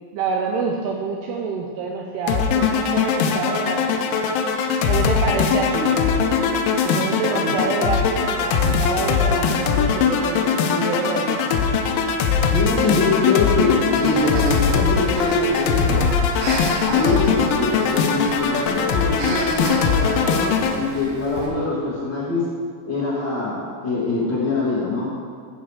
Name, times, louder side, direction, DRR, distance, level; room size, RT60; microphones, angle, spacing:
voice 1, 0.1-4.4 4.9-5.9 6.8-11.4, right 4 dB, 85° right, 0 dB, 2.3 m, -27 dB
sound 1, 2.3-20.8, left 6 dB, 90° left, 3.2 m, -21 dB
voice 2, 12.5-16.0 16.8-22.4 22.9-25.1, left 3 dB, 60° left, -9 dB, 1.1 m, -23 dB
Breathing, 13.9-21.5, right 2 dB, 65° right, 1.9 m, -34 dB
14.5 x 5.2 x 4.8 m, 2.1 s
omnidirectional pair, 5.3 m